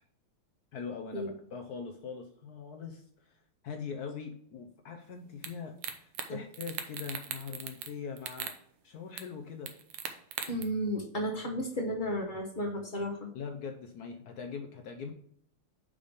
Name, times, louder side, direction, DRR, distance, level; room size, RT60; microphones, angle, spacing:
voice 1, 0.7-3.3 3.6-8.5 8.8-9.7 13.3-15.1, left 6 dB, 75° left, 5 dB, 0.9 m, -42 dB
sound 1, 5.4-5.5 5.8-6.3 6.5-7.9 8.2-8.6 9.2-9.3 9.7-10.6, right 8 dB, 85° right, 1.7 m, -38 dB
voice 2, 10.5-13.3, equal, 45° left, 1 dB, 0.6 m, -33 dB
5.4 x 5.0 x 5.1 m, 0.65 s
omnidirectional pair, 2.3 m